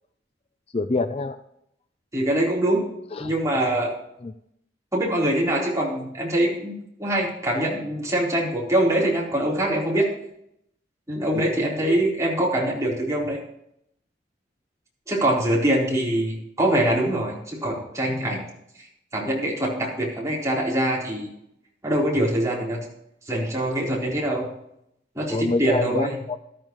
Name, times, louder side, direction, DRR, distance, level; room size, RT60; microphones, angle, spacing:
voice 1, 0.7-1.4 3.1-3.3 4.2-4.3 11.3-11.7 25.3-26.4, left 3 dB, 35° left, 10 dB, 0.5 m, -27 dB
voice 2, 2.1-2.9 3.2-3.9 4.9-10.1 11.1-13.4 15.1-18.4 19.1-21.3 21.8-22.8 23.3-24.4 25.2-26.2, right 1 dB, 20° right, -4 dB, 4.1 m, -23 dB
13.5 x 12.5 x 3.2 m, 0.76 s
head